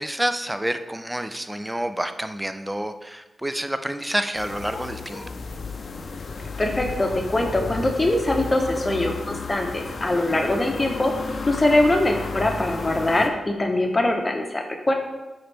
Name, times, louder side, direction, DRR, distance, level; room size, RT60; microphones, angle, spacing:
voice 1, 0.0-5.2, right 1 dB, 10° right, 9 dB, 0.4 m, -28 dB
sound 1, 4.3-13.3, left 4 dB, 60° left, 0.6 m, -33 dB
voice 2, 6.6-11.1 11.5-14.9, left 1 dB, 25° left, 2 dB, 0.9 m, -22 dB
8.7 x 4.0 x 3.3 m, 1.1 s
cardioid pair, 60°, 0 cm